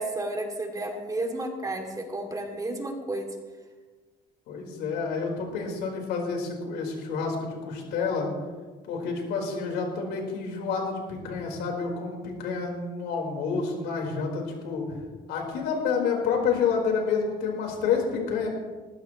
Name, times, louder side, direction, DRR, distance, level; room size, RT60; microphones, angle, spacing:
voice 1, 0.0-3.3, right 2 dB, 20° right, 2 dB, 2.7 m, -32 dB
voice 2, 4.5-8.3 8.9-15.0 15.3-18.5, left 5 dB, 85° left, 0 dB, 4.5 m, -29 dB
20.0 x 15.0 x 3.2 m, 1.4 s
cardioid pair, 110°, 17 cm